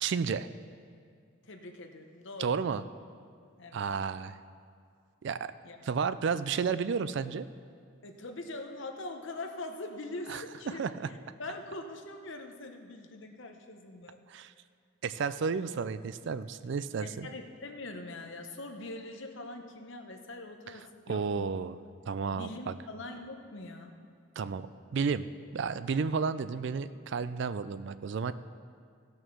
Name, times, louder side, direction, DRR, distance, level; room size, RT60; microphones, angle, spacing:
voice 1, 0.0-0.5 2.4-2.8 3.7-4.4 5.2-5.5 5.8-7.5 10.3-11.1 14.3-14.5 15.0-17.3 21.1-21.8 22.1-22.7 24.4-24.7 24.9-25.3 25.5-28.3, right 5 dB, 55° right, 14 dB, 0.3 m, -32 dB
voice 2, 1.4-2.5 3.6-3.8 5.6-5.8 8.0-14.5 17.0-21.5 22.3-23.9, left 2 dB, 60° left, 4 dB, 0.9 m, -43 dB
14.5 x 6.4 x 6.2 m, 2.2 s
head